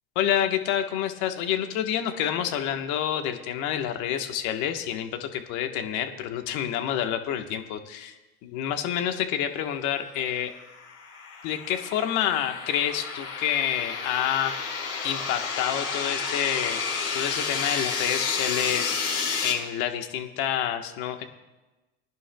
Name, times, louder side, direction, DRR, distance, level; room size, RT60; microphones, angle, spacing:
voice 1, 0.1-8.2 8.4-10.5 11.4-14.7 15.0-16.8 17.1-18.9 19.4-21.2, left 10 dB, 65° left, 6 dB, 1.4 m, -28 dB
sound 1, 10.5-19.5, left 5 dB, 50° left, 4.7 m, -31 dB
21.5 x 11.0 x 2.3 m, 1.1 s
supercardioid pair, 105°, 32 cm